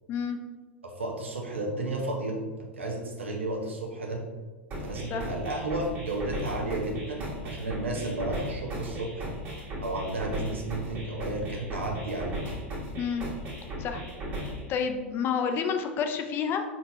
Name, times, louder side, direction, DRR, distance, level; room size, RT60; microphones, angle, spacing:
voice 1, 0.8-2.4 2.7-4.2 4.8-9.3 9.5-12.4, right 2 dB, 75° right, 1 dB, 0.8 m, -33 dB
sound 1, 4.7-14.7, equal, 35° right, 1.4 m, -37 dB
voice 2, 14.4-16.6, left 6 dB, 35° left, 6 dB, 0.4 m, -29 dB
4.3 x 3.9 x 2.3 m, 1.3 s
figure-of-eight pair, 85°, 7 cm